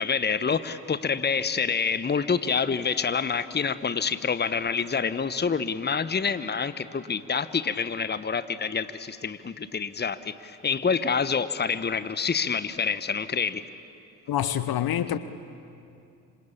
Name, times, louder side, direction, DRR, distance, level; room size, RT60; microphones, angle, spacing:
voice 1, 0.0-13.6, left 6 dB, 20° left, 1.1 m, -27 dB
voice 2, 14.3-15.2, left 11 dB, 50° left, 1.0 m, -26 dB
26.5 x 26.0 x 8.6 m
figure-of-eight pair, 40°, 46 cm